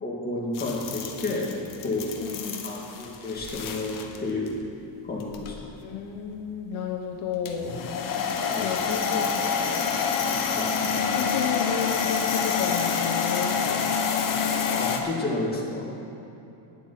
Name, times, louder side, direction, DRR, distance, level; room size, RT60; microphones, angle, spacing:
voice 1, 0.0-1.5 1.8-2.1 2.6-4.6 5.1-5.6 8.1-8.7 10.5-11.2 14.7-15.9, left 2 dB, 20° left, -3 dB, 2.0 m, -31 dB
sound 1, 0.5-4.2 4.5-4.6 5.2-5.6 7.4-15.0, left 6 dB, 40° left, 1.1 m, -27 dB
voice 2, 2.2-2.7 5.8-7.8 8.6-9.5 11.1-13.9, left 6 dB, 80° left, 1 dB, 1.2 m, -32 dB
9.8 x 8.1 x 8.4 m, 2.8 s
cardioid pair, 160°, 50 cm